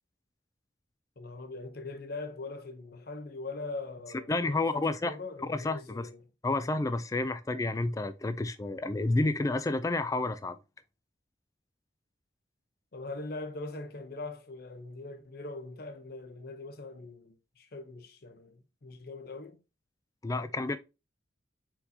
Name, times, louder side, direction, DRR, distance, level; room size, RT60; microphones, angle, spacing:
voice 1, 1.2-6.3 12.9-19.6, left 3 dB, 50° left, 0.7 m, -42 dB
voice 2, 4.3-5.1 5.5-6.1 6.4-10.6 20.2-20.8, left 2 dB, 15° left, 0.3 m, -30 dB
4.5 x 4.0 x 2.8 m
head